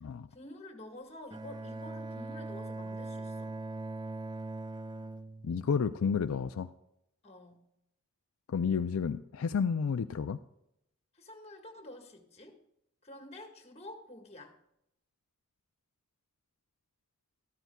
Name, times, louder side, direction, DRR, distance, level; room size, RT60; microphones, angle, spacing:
voice 1, 0.3-3.5 7.2-7.6 11.1-12.6 13.0-14.6, left 1 dB, 30° left, 3 dB, 1.7 m, -49 dB
Bowed string instrument, 1.3-6.3, right 2 dB, 20° right, 0.4 m, -41 dB
voice 2, 5.4-6.7 8.5-10.4, left 6 dB, 70° left, 9 dB, 0.4 m, -31 dB
13.5 x 13.0 x 2.3 m, 0.82 s
head